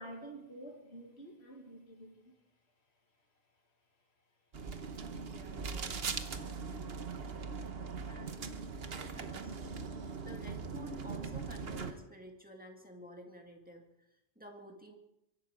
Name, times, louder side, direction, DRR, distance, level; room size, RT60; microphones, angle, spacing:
voice 1, 0.0-2.3, right 1 dB, 75° left, 1 dB, 2.5 m, -52 dB
sound 1, 4.5-11.9, right 5 dB, 70° right, 1.3 m, -40 dB
voice 2, 5.3-7.0 8.1-8.4 9.1-9.9 10.2-14.9, equal, 10° right, 2 dB, 2.0 m, -52 dB
24.0 x 11.5 x 5.1 m, 0.87 s
omnidirectional pair, 1.1 m